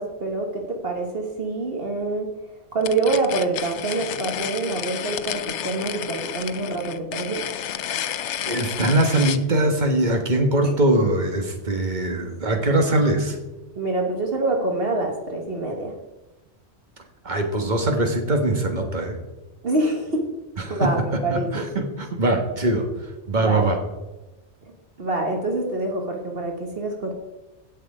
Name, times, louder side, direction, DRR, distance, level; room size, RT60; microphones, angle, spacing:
voice 1, 0.0-2.3 2.7-7.4 10.6-10.7 13.7-15.9 19.6-20.3 20.7-21.7 23.4-23.7 25.0-27.2, right 2 dB, 55° right, 2 dB, 1.6 m, -26 dB
sound 1, 2.8-9.4, left 10 dB, 85° left, 1.0 m, -31 dB
voice 2, 8.5-13.4 17.2-19.2 20.7-20.9 21.3-22.9 23.3-23.8, right 1 dB, 40° right, 4 dB, 1.7 m, -22 dB
16.5 x 6.6 x 4.9 m, 1.1 s
omnidirectional pair, 1.2 m